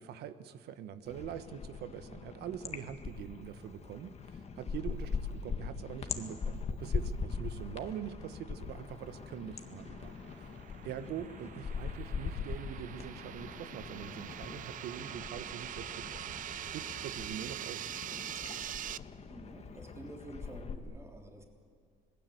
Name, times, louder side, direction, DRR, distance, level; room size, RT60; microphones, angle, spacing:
voice 1, 0.0-10.4 10.8-16.4 16.7-17.9, right 9 dB, 75° right, 11 dB, 1.4 m, -44 dB
sound 1, 1.1-20.8, left 5 dB, 40° left, 1.8 m, -41 dB
sound 2, 8.5-19.0, right 11 dB, 50° right, 0.6 m, -44 dB
voice 2, 19.3-21.4, right 2 dB, 15° right, 2 dB, 3.4 m, -49 dB
26.0 x 20.0 x 8.0 m, 2.2 s
cardioid pair, 110°, 17 cm